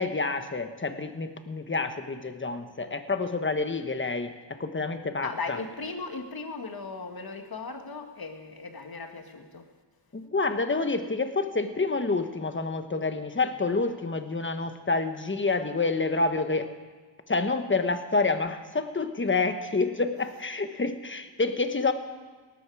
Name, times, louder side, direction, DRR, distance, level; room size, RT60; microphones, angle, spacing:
voice 1, 0.0-5.6 10.1-16.7 17.3-21.9, left 3 dB, 25° left, 8 dB, 1.2 m, -28 dB
voice 2, 5.2-9.7, left 4 dB, 50° left, 5 dB, 1.9 m, -37 dB
18.5 x 13.5 x 4.8 m, 1.4 s
wide cardioid pair, 80°, 45 cm